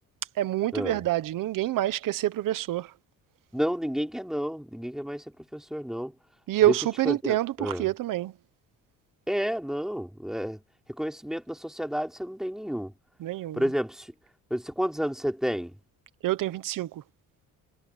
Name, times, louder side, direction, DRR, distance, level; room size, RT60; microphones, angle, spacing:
voice 1, 0.4-2.9 6.5-8.3 13.2-13.7 16.2-17.0, right 14 dB, 75° right, 1.0 m, -27 dB
voice 2, 3.5-5.2 5.5-6.1 7.0-7.8 9.3-10.6 11.0-12.9 13.6-14.1 14.5-15.7, equal, ahead, 3.1 m, -30 dB
cardioid pair, 150°, 33 cm